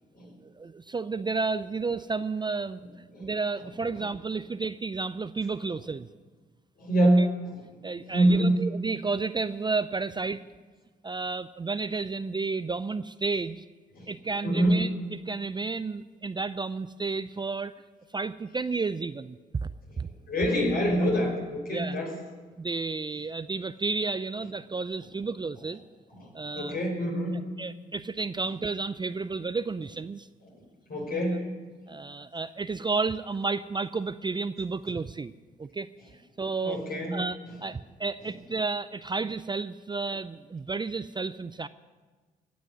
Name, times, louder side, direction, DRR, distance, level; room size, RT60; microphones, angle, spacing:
voice 1, 0.4-2.8 3.2-6.1 7.2-7.3 7.8-10.4 11.0-13.7 14.1-17.7 18.1-19.7 20.0-20.1 21.7-22.0 22.6-25.8 26.3-26.8 27.3-30.3 31.9-35.3 35.6-35.9 36.4-36.8 37.1-41.7, right 4 dB, 25° right, 14 dB, 0.5 m, -32 dB
voice 2, 6.8-7.5 8.1-8.6 13.9-14.1 14.4-14.7 20.3-22.1 26.1-27.3 30.5-30.6 30.9-31.4 36.6-37.2, right 1 dB, 55° left, 0 dB, 5.0 m, -25 dB
16.5 x 6.3 x 9.5 m, 1.4 s
supercardioid pair, 55°, 19 cm